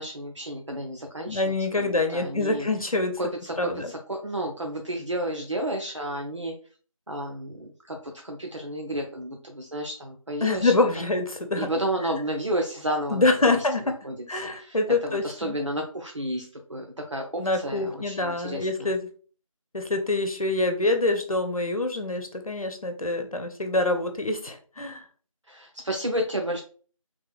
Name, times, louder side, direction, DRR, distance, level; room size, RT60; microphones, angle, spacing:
voice 1, 0.0-2.7 3.2-6.5 7.1-10.7 11.6-13.6 14.0-18.9 25.5-26.6, right 1 dB, 60° right, 2 dB, 0.5 m, -32 dB
voice 2, 1.3-3.2 3.6-3.9 10.4-11.7 13.1-14.0 14.3-15.5 17.4-19.0 19.7-25.0, left 2 dB, 80° left, 5 dB, 0.8 m, -25 dB
3.3 x 2.3 x 3.4 m, 0.41 s
figure-of-eight pair, 175°, 18 cm